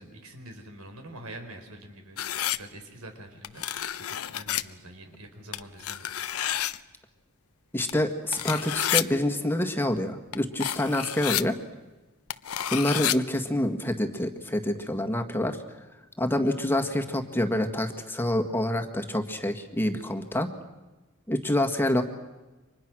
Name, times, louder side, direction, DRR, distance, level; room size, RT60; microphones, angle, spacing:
voice 1, 0.0-2.2 2.5-6.1, right 1 dB, 85° right, 5 dB, 4.7 m, -45 dB
sound 1, 2.2-2.6 3.4-4.6 5.5-6.8 7.9-8.0 8.3-9.0 10.3-10.4 10.6-11.4 12.3-13.2, left 12 dB, 90° left, 0.8 m, -29 dB
voice 2, 7.7-11.6 12.7-15.6 16.2-20.5 21.3-22.0, left 1 dB, 10° left, 4 dB, 1.7 m, -27 dB
30.0 x 25.5 x 6.2 m, 1.1 s
head